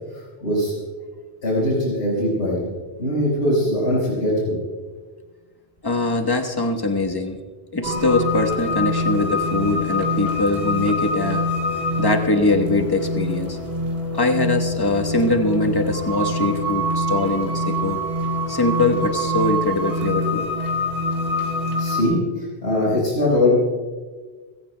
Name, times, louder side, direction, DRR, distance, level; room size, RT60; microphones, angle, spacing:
voice 1, 0.1-0.7 1.4-2.7 3.0-4.6 21.8-23.6, left 1 dB, 85° left, -6 dB, 5.4 m, -21 dB
voice 2, 5.8-7.4 7.7-11.4 12.0-13.6 14.1-18.0 18.5-20.5, left 2 dB, 20° left, 4 dB, 1.1 m, -22 dB
sound 1, 7.8-22.0, left 1 dB, 40° right, 2.9 m, -25 dB
30.0 x 15.0 x 2.2 m, 1.4 s
omnidirectional pair, 1.1 m